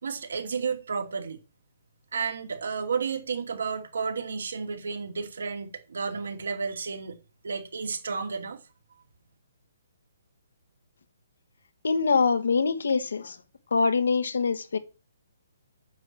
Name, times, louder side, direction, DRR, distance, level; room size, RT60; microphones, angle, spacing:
voice 1, 0.0-1.4 2.1-7.2 7.4-8.6, right 5 dB, 75° right, 2.6 m, -32 dB
voice 2, 11.8-13.4 13.7-14.8, left 4 dB, 80° left, 1.3 m, -24 dB
9.3 x 4.6 x 7.6 m
hypercardioid pair, 170°, 0 cm